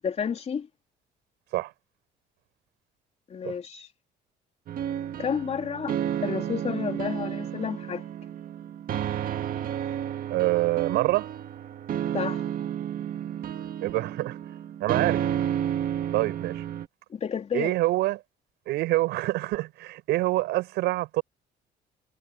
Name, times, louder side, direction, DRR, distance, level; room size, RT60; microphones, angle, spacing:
voice 1, 0.0-0.7 3.3-3.9 5.2-6.0 6.2-8.0 12.1-12.4 17.1-17.7, left 7 dB, 40° left, 3.5 m, -30 dB
sound 1, 4.7-16.9, right 10 dB, 55° right, 1.8 m, -31 dB
voice 2, 10.3-11.3 13.8-14.4 14.8-15.2 16.1-16.6 17.5-18.2 18.7-21.2, right 18 dB, 85° right, 6.3 m, -26 dB
cardioid pair, 110°, 17 cm